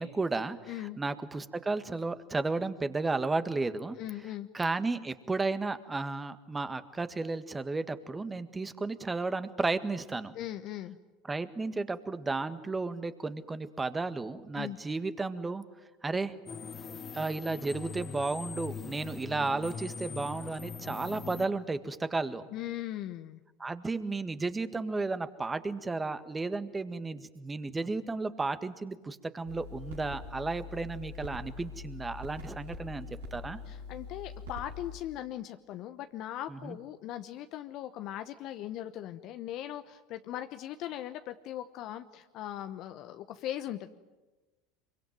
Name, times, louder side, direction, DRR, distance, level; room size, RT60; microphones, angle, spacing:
voice 1, 0.0-4.0 4.5-10.3 11.3-15.6 16.0-16.3 17.1-22.5 23.6-33.6 36.5-36.8, right 3 dB, 15° right, 11 dB, 1.7 m, -33 dB
voice 2, 0.7-1.0 4.0-4.5 10.3-11.0 14.5-14.8 22.5-23.4 33.7-43.9, left 12 dB, 55° left, 9 dB, 1.0 m, -39 dB
sound 1, 16.5-21.5, left 6 dB, 30° left, 2.0 m, -42 dB
sound 2, 29.4-35.0, left 3 dB, 80° right, 5.9 m, -44 dB
25.0 x 23.5 x 9.3 m, 1.2 s
hypercardioid pair, 80°, 0 cm